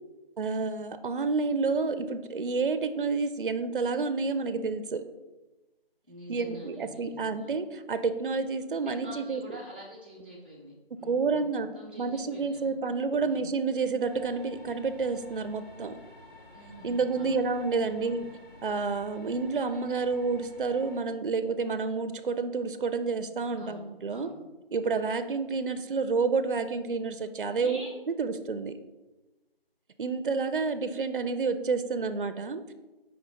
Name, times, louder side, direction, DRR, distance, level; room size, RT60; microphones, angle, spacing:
voice 1, 0.4-5.0 6.3-9.4 11.0-11.7 11.9-16.0 16.8-18.3 18.6-24.3 24.7-27.8 28.2-28.7 30.0-32.7, right 4 dB, 60° right, 10 dB, 0.6 m, -29 dB
voice 2, 6.1-7.5 9.0-12.7 13.2-13.5 16.5-17.5 17.9-18.2 23.6-24.4 27.5-27.9, right 1 dB, 10° right, -6 dB, 0.6 m, -46 dB
sound 1, 14.0-21.0, left 1 dB, 10° left, 2.3 m, -51 dB
6.2 x 5.0 x 4.0 m, 1.1 s
figure-of-eight pair, 165°, 30 cm